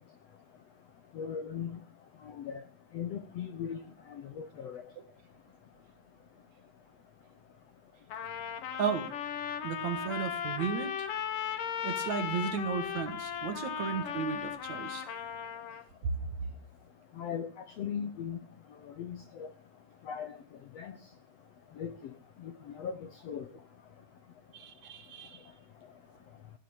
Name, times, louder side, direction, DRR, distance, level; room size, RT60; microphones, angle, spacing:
voice 1, 1.1-1.8 2.3-2.6 2.9-3.8 4.4-4.8 17.2-17.5 17.8-18.4 19.0-19.5 20.1-20.4 20.7-20.9 21.8-21.9 22.4-23.0 23.2-23.4, left 7 dB, 85° left, 1.4 m, -38 dB
Trumpet, 8.1-15.8, left 8 dB, 65° left, 2.9 m, -37 dB
voice 2, 8.8-9.1 9.6-11.1 11.8-15.1 16.0-16.2 24.5-25.5, right 7 dB, 55° right, 2.4 m, -34 dB
17.0 x 8.4 x 8.9 m
omnidirectional pair, 4.5 m